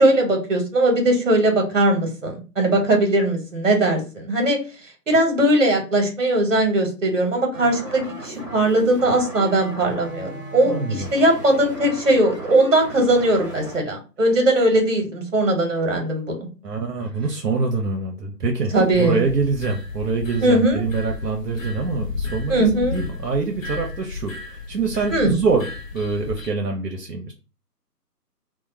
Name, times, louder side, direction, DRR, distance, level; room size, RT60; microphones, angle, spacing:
voice 1, 0.0-4.6 5.1-16.5 18.7-19.2 20.4-20.8 22.5-23.0 25.1-25.3, right 1 dB, 50° right, 3 dB, 0.9 m, -19 dB
sound 1, 7.5-13.8, right 1 dB, 20° right, 0.7 m, -36 dB
voice 2, 10.7-11.1 16.6-18.7 19.0-27.3, right 4 dB, 75° right, 2 dB, 0.6 m, -25 dB
sound 2, 18.7-26.5, left 4 dB, 55° left, 0.5 m, -33 dB
2.2 x 2.2 x 2.9 m, 0.34 s
figure-of-eight pair, 145°, 48 cm